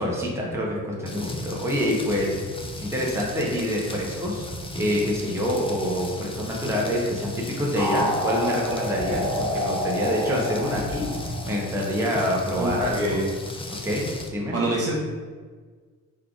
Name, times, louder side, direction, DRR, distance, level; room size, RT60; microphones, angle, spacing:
voice 1, 0.0-2.3 2.8-4.4 4.7-13.2 13.7-14.0 14.3-14.5, equal, 5° right, -4 dB, 1.2 m, -26 dB
Rain, 1.1-14.3, left 2 dB, 15° left, 0.5 m, -36 dB
sound 1, 7.7-12.2, equal, 90° left, 1.1 m, -28 dB
voice 2, 12.6-13.3 14.5-14.9, right 1 dB, 35° right, -4 dB, 1.1 m, -26 dB
3.7 x 3.3 x 3.7 m, 1.5 s
figure-of-eight pair, 40°, 43 cm